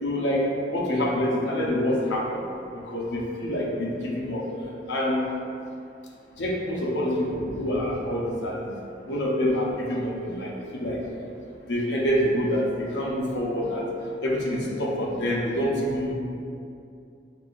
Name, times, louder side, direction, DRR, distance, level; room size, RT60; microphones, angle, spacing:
voice 1, 0.0-2.4 2.7-4.5 4.9-5.2 6.4-8.7 9.1-11.0 11.7-13.9 14.2-16.1, equal, 70° left, -3 dB, 0.7 m, -26 dB
5.3 x 3.1 x 2.5 m, 2.6 s
head